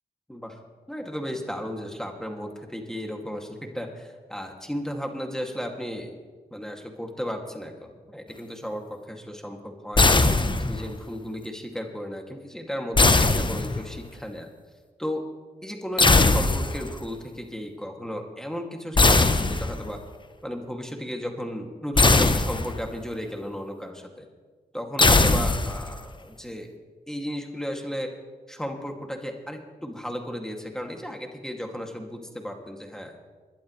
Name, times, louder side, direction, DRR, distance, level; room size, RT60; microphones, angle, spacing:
voice 1, 0.9-6.1 6.5-10.2 10.6-14.5 15.0-15.3 15.6-20.0 20.4-24.3 24.7-26.7 27.1-28.1 28.5-33.2, equal, 5° left, 2 dB, 2.6 m, -34 dB
sound 1, 10.0-10.9 13.0-14.1 16.0-16.9 19.0-20.0 22.0-22.9 25.0-26.0, left 3 dB, 30° left, 1.0 m, -20 dB
21.5 x 11.5 x 3.3 m, 1.4 s
supercardioid pair, 40°, 17 cm